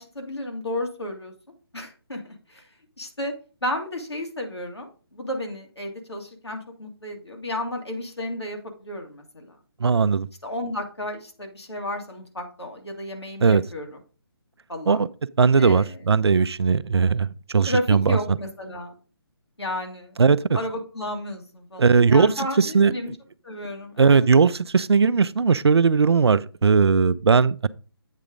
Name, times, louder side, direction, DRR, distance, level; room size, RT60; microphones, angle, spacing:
voice 1, 0.0-1.3 1.7-2.7 3.0-3.4 3.6-9.6 10.4-13.9 14.7-15.0 15.6-16.0 17.7-18.9 19.6-20.2 20.5-23.1 23.4-24.2, left 1 dB, 90° left, 2.1 m, -32 dB
voice 2, 9.8-10.3 13.4-13.6 14.9-15.1 15.4-18.4 20.2-20.6 21.8-22.3 22.6-23.1 24.0-27.7, right 5 dB, 80° right, 0.4 m, -18 dB
8.3 x 3.7 x 5.0 m
figure-of-eight pair, 150°, 13 cm